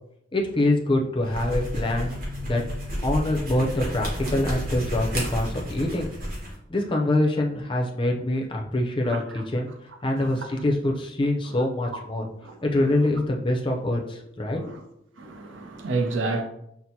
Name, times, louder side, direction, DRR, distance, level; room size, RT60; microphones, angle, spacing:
voice 1, 0.3-2.6 3.0-6.1 6.7-9.7 10.0-12.3 12.6-14.8, left 1 dB, 25° left, 0.5 m, -25 dB
sound 1, 1.2-6.6, equal, 45° right, 1.1 m, -31 dB
voice 2, 15.2-16.4, right 3 dB, 75° right, 0.5 m, -29 dB
5.8 x 2.1 x 2.7 m
head